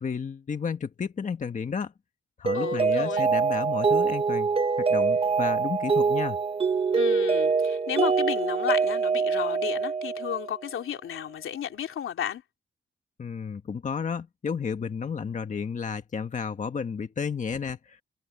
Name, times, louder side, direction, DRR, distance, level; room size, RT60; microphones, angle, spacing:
voice 1, 0.0-1.9 2.4-4.5 4.8-6.4 13.2-18.0, left 6 dB, 40° left, 1.5 m, -32 dB
voice 2, 2.5-3.2 6.9-12.4, left 9 dB, 85° left, 3.2 m, -33 dB
Mallet percussion, 2.5-10.6, right 5 dB, 30° right, 0.9 m, -24 dB
wide cardioid pair, 130°, 21 cm